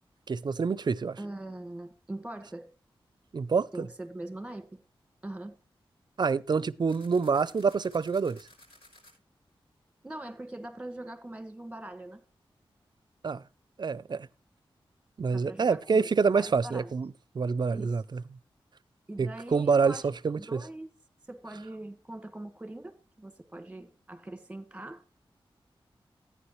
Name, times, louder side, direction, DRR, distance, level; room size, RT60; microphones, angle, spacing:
voice 1, 0.3-1.2 3.3-3.7 6.2-8.4 13.2-13.4 13.8-14.3 15.2-18.2 19.2-20.6, right 5 dB, 50° right, 0.5 m, -27 dB
voice 2, 1.2-2.7 3.7-4.7 5.2-5.5 10.0-12.2 15.3-16.9 17.7-18.0 19.1-20.1 20.3-20.9 21.3-25.0, right 1 dB, 10° right, 1.7 m, -42 dB
sound 1, 6.9-9.1, left 1 dB, 75° left, 5.7 m, -56 dB
14.5 x 9.5 x 3.2 m
wide cardioid pair, 85°, 9 cm